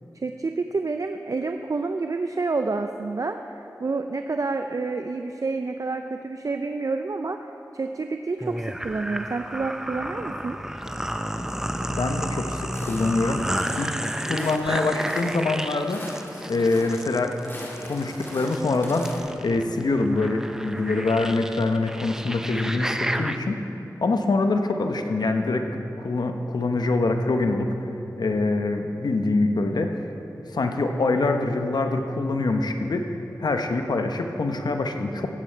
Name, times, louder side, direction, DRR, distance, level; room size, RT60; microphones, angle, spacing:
voice 1, 0.1-7.4 7.7-10.6, right 3 dB, 55° right, 6 dB, 0.4 m, -28 dB
sound 1, 8.4-23.4, equal, 5° right, 0.6 m, -32 dB
voice 2, 11.9-13.5 13.8-14.0 14.3-16.0 16.5-17.3 17.9-19.1 19.4-23.7 24.0-27.7 28.2-29.9 30.5-33.1 33.4-35.3, left 3 dB, 85° left, 5 dB, 0.8 m, -24 dB
Walk footsteps, 12.7-19.2, left 1 dB, 30° left, 2.7 m, -41 dB
15.0 x 8.5 x 4.5 m, 2.9 s
cardioid pair, 45°, 7 cm